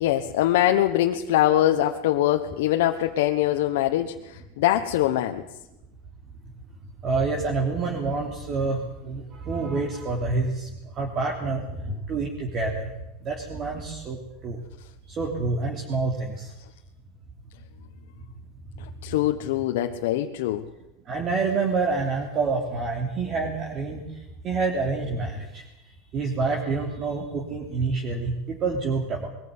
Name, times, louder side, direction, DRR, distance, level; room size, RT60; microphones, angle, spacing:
voice 1, 0.0-5.4 19.0-20.6, left 13 dB, 75° left, 4 dB, 1.2 m, -23 dB
voice 2, 7.0-12.9 13.2-14.6 15.1-16.5 19.0-19.2 21.0-24.1 24.4-25.6 26.1-29.3, right 4 dB, 35° right, 0 dB, 3.3 m, -27 dB
21.5 x 15.0 x 9.7 m, 0.93 s
supercardioid pair, 130°, 0 cm